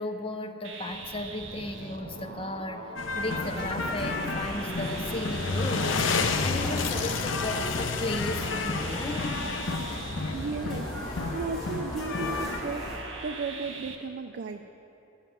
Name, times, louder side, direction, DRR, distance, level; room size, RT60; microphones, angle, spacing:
voice 1, 0.0-9.5, left 1 dB, 30° left, 5 dB, 0.7 m, -35 dB
sound 1, 0.6-14.0, right 2 dB, 85° right, 1.4 m, -41 dB
sound 2, 3.0-12.6, left 4 dB, 90° left, 0.7 m, -31 dB
sound 3, 3.3-13.0, equal, ahead, 2.8 m, -39 dB
voice 2, 10.3-14.6, right 4 dB, 60° right, 6 dB, 0.4 m, -35 dB
12.5 x 7.3 x 7.4 m, 3.0 s
head